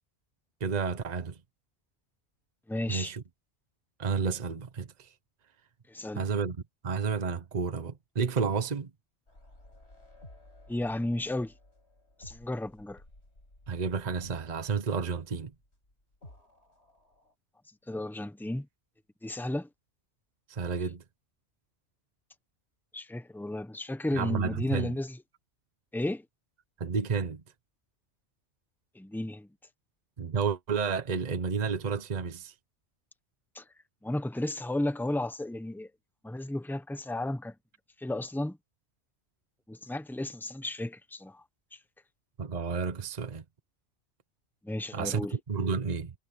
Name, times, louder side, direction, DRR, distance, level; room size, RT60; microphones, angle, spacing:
voice 1, 0.6-1.4 2.9-3.2 4.0-5.1 6.1-6.6 6.8-8.9 13.7-15.5 20.5-21.0 24.1-24.9 26.8-27.4 30.2-32.5 42.4-43.4 44.9-46.1, right 5 dB, 40° right, 1.1 m, -31 dB
voice 2, 2.7-3.1 5.9-6.2 10.7-11.5 12.2-13.0 17.9-18.7 19.2-19.7 22.9-25.2 25.9-26.3 28.9-29.5 33.5-33.6 34.0-35.9 36.2-37.6 38.0-38.6 39.7-41.4 41.7-41.8 44.6-45.3, left 1 dB, ahead, 1.0 m, -33 dB
sound 1, 9.3-17.3, left 1 dB, 75° left, 7.4 m, -55 dB
omnidirectional pair, 1.1 m